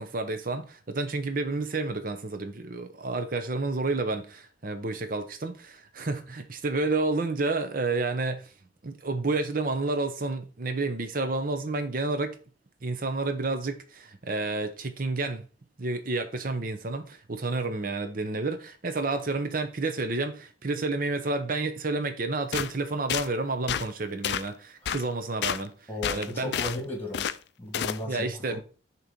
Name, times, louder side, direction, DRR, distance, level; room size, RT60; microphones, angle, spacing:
voice 1, 0.0-8.5 8.8-12.4 12.8-15.5 15.8-26.5 28.0-28.6, right 3 dB, 45° right, 0.8 m, -30 dB
sound 1, 22.5-22.7 23.1-23.3 23.7-23.9 24.2-24.5 24.9-25.0 25.4-25.6 26.0-26.8 27.1-27.4 27.7-28.0, left 9 dB, 60° left, 0.3 m, -29 dB
voice 2, 25.9-27.3 27.6-28.6, left 1 dB, 10° left, 1.7 m, -35 dB
6.6 x 3.0 x 5.1 m
head